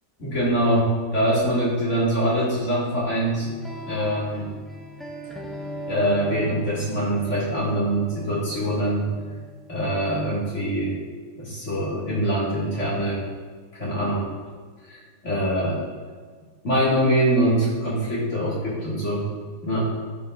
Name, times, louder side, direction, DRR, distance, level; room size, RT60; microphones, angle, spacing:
voice 1, 0.2-3.5 3.9-4.5 5.9-9.1 9.7-11.0 11.4-13.2 13.7-14.3 14.9-15.8 16.6-19.3 19.6-19.8, right 1 dB, 45° left, -7 dB, 2.5 m, -23 dB
sound 1, 3.4-10.4, equal, ahead, 0.4 m, -38 dB
13.0 x 5.6 x 2.6 m, 1.5 s
omnidirectional pair, 1.9 m